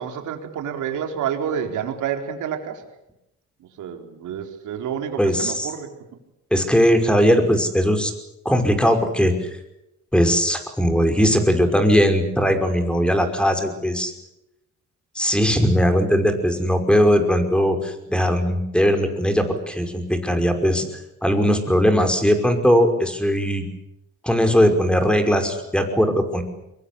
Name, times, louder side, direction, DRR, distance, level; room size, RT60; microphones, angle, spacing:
voice 1, 0.0-2.8 3.8-5.9, right 8 dB, 80° right, 5 dB, 4.4 m, -29 dB
voice 2, 5.2-5.7 6.5-8.1 8.5-9.6 10.1-14.1 15.2-20.8 21.2-23.7 24.2-26.4, equal, 5° left, 7 dB, 5.5 m, -19 dB
24.5 x 22.5 x 8.5 m, 0.85 s
cardioid pair, 90°, 30 cm